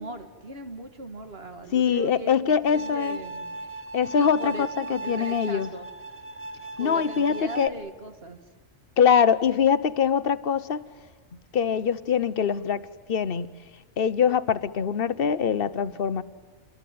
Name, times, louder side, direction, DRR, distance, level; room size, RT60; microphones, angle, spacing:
voice 1, 0.0-3.6 4.2-4.7 5.0-5.9 6.8-8.4, right 2 dB, 50° right, 7 dB, 2.5 m, -38 dB
voice 2, 1.7-3.2 3.9-5.7 6.8-7.7 9.0-10.8 11.5-12.8 13.1-13.5 14.0-16.2, left 7 dB, 50° left, 13 dB, 1.1 m, -23 dB
Bowed string instrument, 2.7-7.7, right 2 dB, 10° right, 0.8 m, -37 dB
28.0 x 22.5 x 9.4 m, 1.4 s
omnidirectional pair, 1.3 m